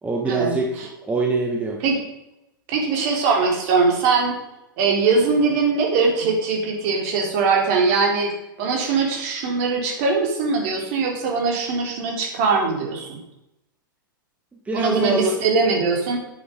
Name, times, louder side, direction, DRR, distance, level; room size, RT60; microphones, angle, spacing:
voice 1, 0.0-1.8 14.6-15.4, right 3 dB, 10° right, 1 dB, 1.6 m, -24 dB
voice 2, 2.7-4.3 4.8-8.3 8.6-13.2 14.7-16.2, right 4 dB, 45° right, 1 dB, 3.8 m, -21 dB
11.0 x 9.5 x 5.2 m, 0.89 s
figure-of-eight pair, 95°, 11 cm